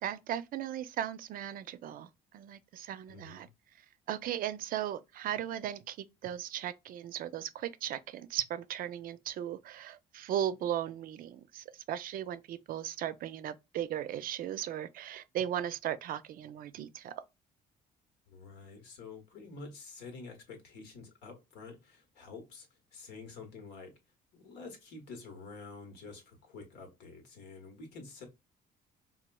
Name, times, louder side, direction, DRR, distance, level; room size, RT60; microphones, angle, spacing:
voice 1, 0.0-3.5 4.1-17.1, right 11 dB, 55° right, 0.4 m, -37 dB
voice 2, 3.1-3.5 18.3-22.7 22.9-23.9 24.3-28.2, left 4 dB, 85° left, 1.2 m, -48 dB
4.2 x 2.3 x 2.2 m
cardioid pair, 110°, 17 cm